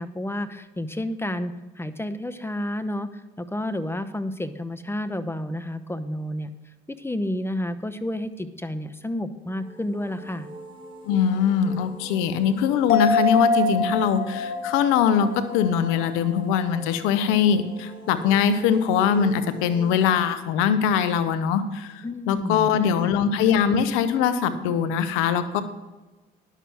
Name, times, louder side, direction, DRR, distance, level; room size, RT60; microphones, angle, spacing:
voice 1, 0.0-6.5 6.9-10.5 22.0-23.1, left 1 dB, 10° left, 11 dB, 0.9 m, -30 dB
sound 1, 9.4-20.0, right 1 dB, 25° right, 3.0 m, -44 dB
voice 2, 11.1-25.6, left 7 dB, 85° left, 12 dB, 0.9 m, -22 dB
sound 2, 12.9-16.6 16.9-17.0, left 3 dB, 45° left, 4.3 m, -25 dB
11.0 x 6.9 x 6.2 m, 1.1 s
supercardioid pair, 60°, 20 cm